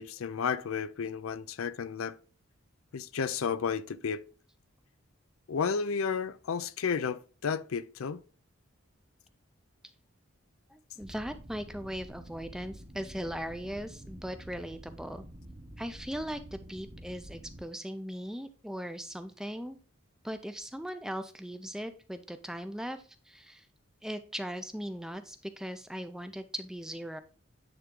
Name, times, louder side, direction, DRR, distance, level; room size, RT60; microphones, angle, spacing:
voice 1, 0.0-2.2 2.9-4.3 5.5-8.2, left 6 dB, 80° left, 0.5 m, -32 dB
voice 2, 10.7-15.2 15.8-19.8 20.2-23.7 24.0-27.2, equal, 5° right, 0.4 m, -39 dB
sound 1, 11.0-17.6, right 1 dB, 30° right, 1.0 m, -48 dB
9.5 x 3.6 x 3.7 m
head